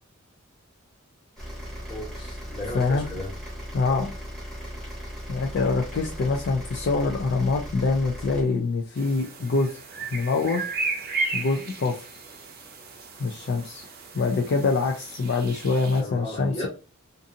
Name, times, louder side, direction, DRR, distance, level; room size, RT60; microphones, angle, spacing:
sound 1, 1.4-8.4, equal, ahead, 0.8 m, -37 dB
voice 1, 1.9-3.3 16.0-16.7, left 1 dB, 25° left, 1.1 m, -35 dB
voice 2, 2.7-3.1 3.7-4.1 5.3-9.8 10.1-10.7 11.3-12.2 13.2-13.8 14.1-16.7, left 3 dB, 55° left, 0.4 m, -25 dB
sound 2, 9.0-16.0, right 3 dB, 45° right, 0.5 m, -34 dB
2.5 x 2.5 x 2.6 m
head